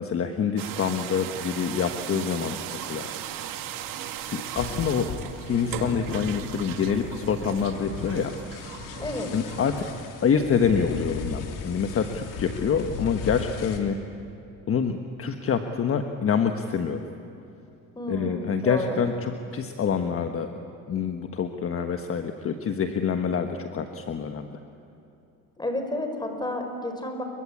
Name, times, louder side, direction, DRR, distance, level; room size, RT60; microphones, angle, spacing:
voice 1, 0.0-3.1 4.3-5.1 5.5-8.3 9.3-9.8 10.2-14.0 14.7-17.0 18.1-20.5 20.9-24.6, left 6 dB, 40° left, 6 dB, 1.4 m, -26 dB
sound 1, 0.6-10.0, right 10 dB, 75° right, 2.0 m, -38 dB
sound 2, 4.6-13.8, left 5 dB, 70° left, 3.1 m, -37 dB
voice 2, 9.0-9.3 17.9-19.0 25.6-27.2, left 1 dB, 10° left, 5 dB, 4.9 m, -31 dB
29.5 x 23.5 x 8.6 m, 2.8 s
cardioid pair, 120°, 34 cm